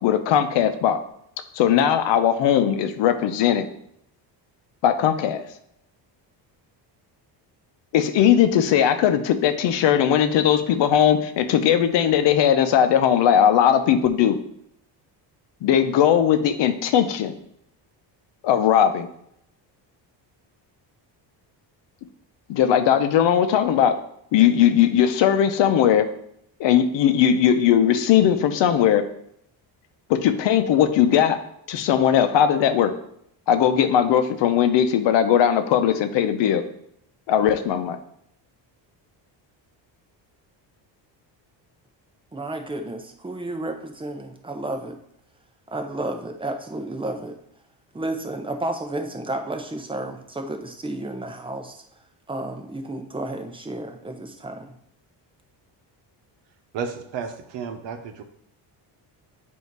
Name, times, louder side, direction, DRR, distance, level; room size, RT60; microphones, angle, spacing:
voice 1, 0.0-1.0 1.5-3.6 4.8-5.4 7.9-14.4 15.6-17.3 18.4-19.1 22.5-24.0 24.3-26.0 26.6-29.0 30.1-31.4 31.7-32.9 33.5-36.6 37.3-38.0, left 9 dB, 70° left, 9 dB, 0.8 m, -19 dB
voice 2, 42.3-45.0 45.7-47.4 47.9-51.8 52.3-54.7, right 2 dB, 10° right, 4 dB, 0.7 m, -32 dB
voice 3, 56.7-58.2, right 6 dB, 70° right, 6 dB, 1.0 m, -32 dB
8.0 x 2.8 x 4.6 m, 0.72 s
cardioid pair, 125°, 45 cm